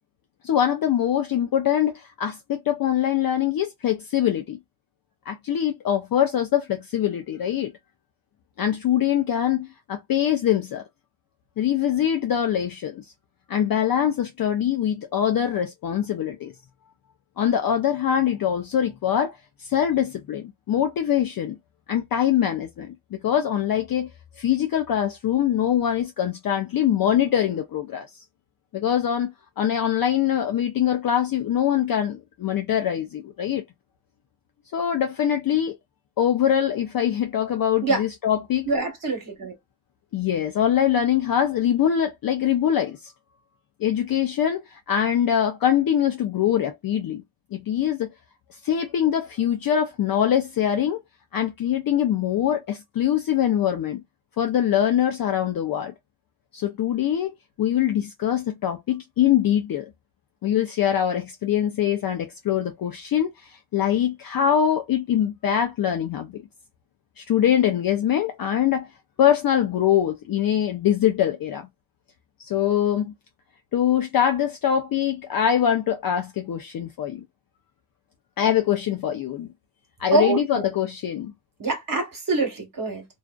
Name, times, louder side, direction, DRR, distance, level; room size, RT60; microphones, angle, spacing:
voice 1, 0.4-4.6 5.3-7.7 8.6-10.8 11.6-13.0 13.5-16.5 17.4-21.6 21.9-24.1 24.4-28.1 28.7-33.6 34.7-35.8 36.2-38.7 40.1-43.1 43.8-47.2 47.5-48.1 48.6-51.0 51.3-54.0 54.4-55.9 56.5-59.9 60.4-66.4 67.2-68.9 69.2-71.7 72.4-73.1 73.7-77.2 78.4-79.5 80.0-81.3, left 10 dB, 45° left, 0.5 m, -23 dB
voice 2, 38.7-39.5 80.1-80.6 81.6-83.1, right 3 dB, 40° right, 1.2 m, -24 dB
2.4 x 2.4 x 2.3 m
cardioid pair, 75°, 49 cm